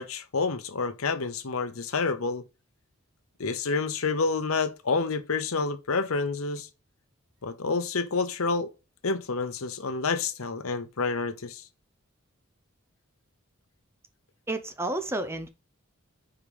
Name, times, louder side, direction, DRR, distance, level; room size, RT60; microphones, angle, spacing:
voice 1, 0.0-2.4 3.4-6.7 7.4-8.7 9.0-11.6, left 4 dB, 80° left, 0.8 m, -28 dB
voice 2, 14.5-15.5, right 2 dB, 10° right, 0.7 m, -31 dB
5.1 x 4.9 x 5.1 m
head